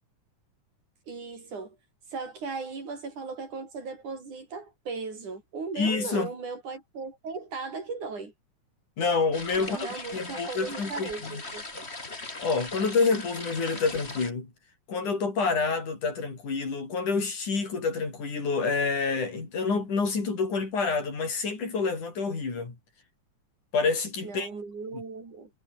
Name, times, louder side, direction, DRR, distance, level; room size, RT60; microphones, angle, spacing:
voice 1, 1.1-1.8 2.1-8.3 9.6-11.9 24.2-25.5, right 4 dB, 75° right, 7.3 m, -37 dB
voice 2, 5.8-6.3 9.0-11.4 12.4-14.5 14.9-22.8 23.7-24.5 24.9-25.0, left 4 dB, 75° left, 7.2 m, -28 dB
sound 1, 9.3-14.3, left 2 dB, 20° left, 3.4 m, -39 dB
omnidirectional pair, 3.5 m